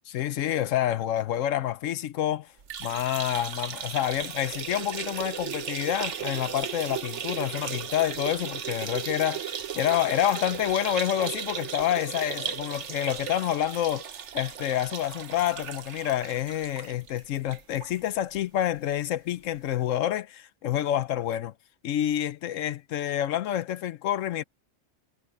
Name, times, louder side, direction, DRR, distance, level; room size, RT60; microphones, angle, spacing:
voice 1, 0.1-2.5 2.8-14.1 14.3-21.5 21.8-24.4, left 11 dB, 85° left, 1.0 m, -28 dB
sound 1, 2.6-18.0 18.4-18.5 18.8-18.9 19.9-20.0, right 8 dB, 65° right, 1.3 m, -36 dB
omnidirectional pair, 1.3 m